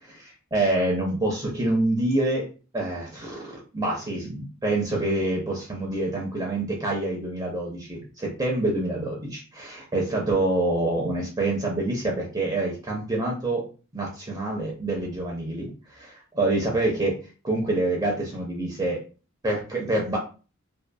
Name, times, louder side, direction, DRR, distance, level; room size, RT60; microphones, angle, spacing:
voice 1, 0.1-2.5 2.7-13.6 13.9-17.1 17.4-19.0 19.4-20.2, right 2 dB, 20° right, -2 dB, 0.5 m, -26 dB
2.6 x 2.5 x 2.2 m, 0.35 s
head